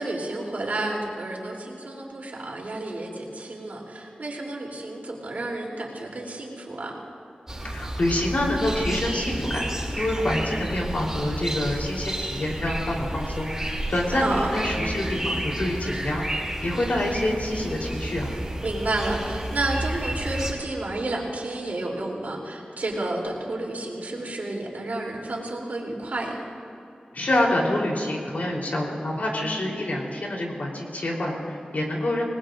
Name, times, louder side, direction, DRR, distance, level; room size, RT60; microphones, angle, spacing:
voice 1, 0.0-7.0 14.1-14.5 18.6-26.4, right 2 dB, 75° right, -2 dB, 3.4 m, -31 dB
sound 1, 7.5-20.5, right 1 dB, 15° right, 3.0 m, -31 dB
voice 2, 7.6-9.7 10.0-18.3 27.1-32.2, left 1 dB, 70° left, -2 dB, 3.8 m, -27 dB
27.5 x 20.0 x 2.6 m, 2.8 s
wide cardioid pair, 90°, 3 cm